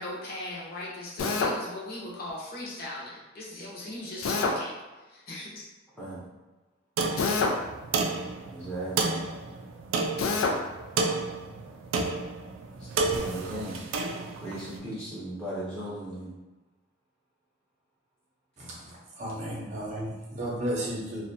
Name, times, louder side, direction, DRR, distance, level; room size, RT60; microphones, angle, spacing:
voice 1, 0.0-4.7 5.1-5.6, left 1 dB, 50° left, -4 dB, 0.7 m, -38 dB
Drill, 1.2-1.6 4.2-4.6 7.2-7.6 10.2-10.6, left 4 dB, 85° left, 0.3 m, -26 dB
sound 1, 7.0-14.7, right 3 dB, 80° right, 0.3 m, -31 dB
voice 2, 8.5-9.2 13.2-13.8 14.4-16.3, right 1 dB, 5° left, -10 dB, 0.6 m, -36 dB
voice 3, 18.6-21.2, right 1 dB, 35° right, -4 dB, 0.7 m, -34 dB
2.6 x 2.2 x 2.6 m, 1.1 s
head